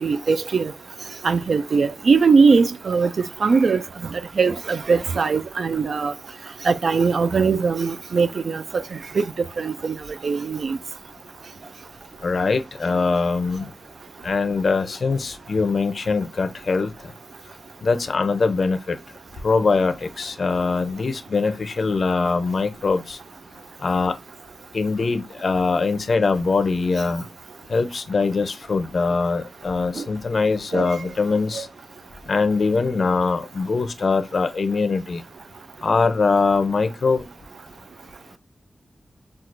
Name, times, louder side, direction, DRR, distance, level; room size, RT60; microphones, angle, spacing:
voice 1, 0.0-0.7 1.2-3.1 3.4-3.8 4.4-6.1 6.7-8.8 9.2-9.3 9.6-10.0 10.2-10.8 30.0-30.1 30.7-30.9 31.6-31.7, right 5 dB, 70° right, 0.3 m, -20 dB
voice 2, 12.2-13.7 14.2-16.9 17.8-19.0 19.4-23.2 23.8-24.1 24.7-27.2 27.7-31.7 32.3-35.2 35.8-37.2, left 4 dB, 60° left, 0.5 m, -22 dB
5.9 x 2.3 x 2.5 m
wide cardioid pair, 140°, 0 cm